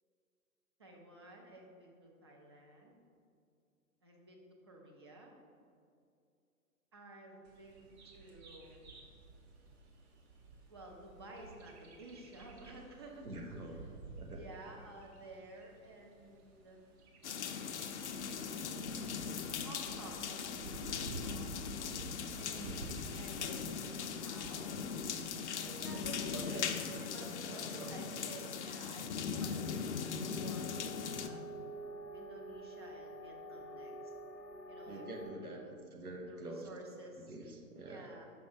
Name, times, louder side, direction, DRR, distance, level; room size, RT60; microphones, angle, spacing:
voice 1, 0.8-3.0 4.0-5.3 6.9-7.9 8.1-8.9 10.7-14.0 14.4-16.8 19.6-21.6 23.2-24.8 25.6-31.4 32.1-34.1 34.7-35.1 35.4-35.7 36.3-37.3 37.9-38.3, right 2 dB, 20° right, -1 dB, 0.3 m, -53 dB
Bird vocalization bird call bird song, 7.4-26.8, right 3 dB, 45° right, 1.0 m, -52 dB
voice 2, 13.2-13.8 14.1-14.4 22.4-22.9 26.3-28.5 34.9-36.7 37.3-38.1, right 2 dB, 85° right, 2 dB, 1.0 m, -47 dB
sound 1, 17.2-31.3, left 6 dB, 55° left, 0.5 m, -40 dB
sound 2, 29.4-35.3, right 1 dB, ahead, 0.7 m, -48 dB
5.8 x 5.2 x 3.3 m, 2.4 s
figure-of-eight pair, 115°, 43 cm